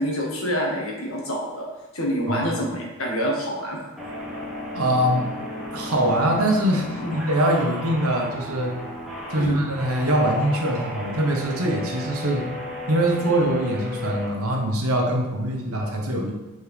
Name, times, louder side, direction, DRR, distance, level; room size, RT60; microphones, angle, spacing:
voice 1, 0.0-1.7 1.9-3.8 7.0-7.1 9.3-9.7, equal, 70° left, -2 dB, 1.5 m, -27 dB
sound 1, 4.0-14.3, left 1 dB, ahead, 1.0 m, -34 dB
voice 2, 4.7-5.3 5.7-8.7 9.3-12.5 12.9-16.3, right 1 dB, 90° right, 0 dB, 1.2 m, -23 dB
6.6 x 4.3 x 3.4 m, 1.1 s
head